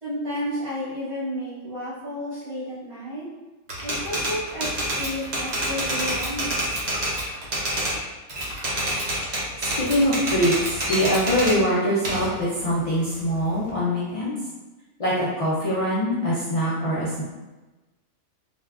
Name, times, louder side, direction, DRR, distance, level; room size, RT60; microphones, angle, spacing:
voice 1, 0.0-3.3 3.8-6.6, equal, 60° right, -10 dB, 1.6 m, -32 dB
Typewriter, 3.7-8.0 8.3-11.6 12.0-13.7, right 1 dB, 45° right, 0.6 m, -27 dB
voice 2, 9.6-14.3 15.0-17.2, equal, 55° left, -8 dB, 0.4 m, -23 dB
3.3 x 2.2 x 2.3 m, 1.1 s
omnidirectional pair, 1.3 m